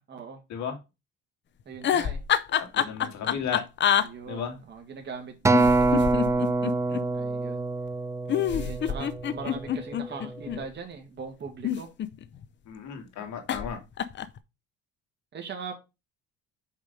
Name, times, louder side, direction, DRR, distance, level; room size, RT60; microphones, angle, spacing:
voice 1, 0.1-0.4 1.7-2.2 4.0-6.4 7.1-7.7 8.5-11.9 15.3-15.7, right 5 dB, 35° right, 1.9 m, -40 dB
sound 1, 1.7-4.1 5.5-7.0 8.3-10.6 11.5-12.4 13.5-13.7 14.0-14.4, left 9 dB, 40° left, 0.6 m, -26 dB
voice 2, 2.5-3.6 4.2-4.6 12.7-13.8, left 7 dB, 65° left, 2.2 m, -34 dB
Acoustic guitar, 5.4-9.9 10.5-10.6, right 3 dB, 10° right, 0.4 m, -25 dB
5.5 x 4.8 x 5.1 m
cardioid pair, 110°, 30 cm